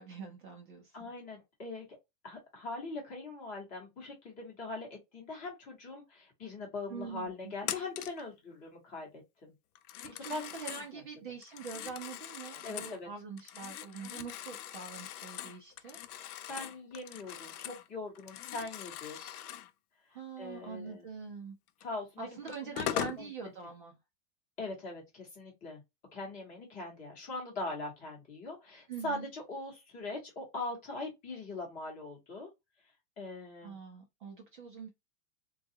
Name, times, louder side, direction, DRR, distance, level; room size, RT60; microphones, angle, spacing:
voice 1, 0.0-1.1 6.9-7.5 10.2-16.0 20.1-21.6 22.2-23.9 28.9-29.3 33.6-34.9, right 5 dB, 35° right, 0.5 m, -44 dB
voice 2, 0.9-1.8 2.2-9.5 10.3-10.4 10.9-11.0 12.6-13.1 16.5-19.4 20.4-21.0 21.8-22.4 22.9-23.3 24.6-25.8 26.1-32.5 33.2-33.8, left 2 dB, 15° left, 0.9 m, -41 dB
Telephone, 7.6-8.2 9.8-10.9 11.4-13.0 13.4-17.9 18.1-19.7 21.8-21.9 22.5-23.2, left 11 dB, 70° left, 0.6 m, -41 dB
3.7 x 2.3 x 2.7 m
supercardioid pair, 170°, 48 cm